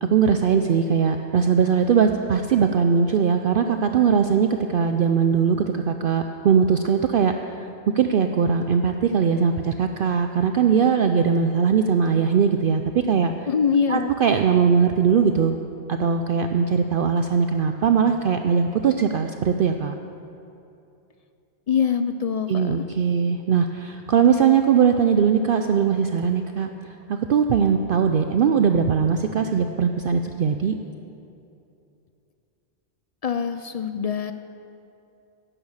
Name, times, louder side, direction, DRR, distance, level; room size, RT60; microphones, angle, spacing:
voice 1, 0.0-7.3 7.9-12.8 13.1-13.3 13.9-15.6 15.9-19.9 22.5-26.7 27.1-30.7, right 6 dB, 60° right, 6 dB, 0.6 m, -20 dB
voice 2, 13.5-14.1 21.7-22.9 33.2-34.3, left 6 dB, 65° left, 9 dB, 0.3 m, -24 dB
11.0 x 10.5 x 7.2 m, 2.7 s
omnidirectional pair, 1.2 m